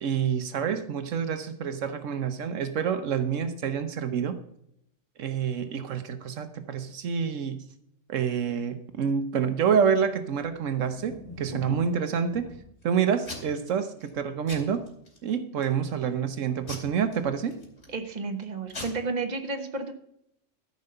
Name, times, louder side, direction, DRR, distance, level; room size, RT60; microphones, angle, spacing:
voice 1, 0.0-4.4 5.2-7.6 8.1-12.4 12.8-14.8 15.2-17.5, right 7 dB, 80° right, 9 dB, 1.2 m, -27 dB
Packing tape duct tape / Tearing, 10.5-11.9 12.3-12.8 13.2-13.7 14.0-14.2 14.5-15.2 15.6-16.0 16.7-18.0 18.4-18.5 18.7-18.8, left 1 dB, 55° left, 3.0 m, -41 dB
voice 2, 17.9-19.9, right 3 dB, 35° right, 6 dB, 1.2 m, -32 dB
13.5 x 5.4 x 6.6 m, 0.74 s
omnidirectional pair, 1.3 m